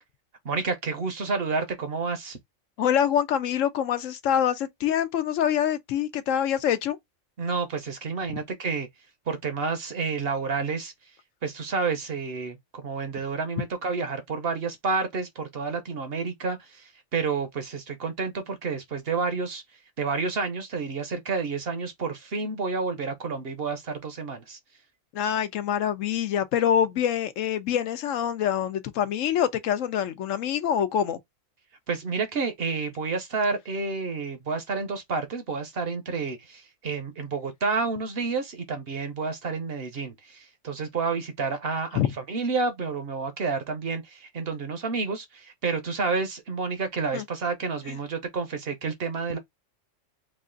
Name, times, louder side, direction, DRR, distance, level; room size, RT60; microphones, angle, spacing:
voice 1, 0.4-2.4 7.4-8.9 9.3-10.9 11.4-19.6 20.0-24.6 31.9-49.4, right 4 dB, 55° right, 0.9 m, -30 dB
voice 2, 2.8-7.0 25.1-31.2 42.0-42.1 47.1-47.2 47.9-48.0, left 9 dB, 75° left, 1.0 m, -25 dB
3.0 x 2.5 x 3.6 m
omnidirectional pair, 1.4 m